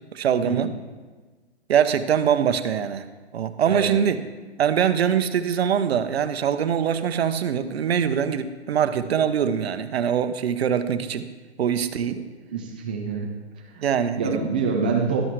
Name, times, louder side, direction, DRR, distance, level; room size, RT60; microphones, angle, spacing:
voice 1, 0.1-0.7 1.7-3.1 3.3-4.2 4.6-11.3 11.6-12.2 13.8-14.4, right 8 dB, 65° right, 10 dB, 0.9 m, -23 dB
voice 2, 3.6-3.9 12.5-13.3 13.6-13.8 14.1-15.2, right 5 dB, 10° right, 1 dB, 0.3 m, -26 dB
12.5 x 11.5 x 3.2 m, 1.3 s
hypercardioid pair, 145°, 34 cm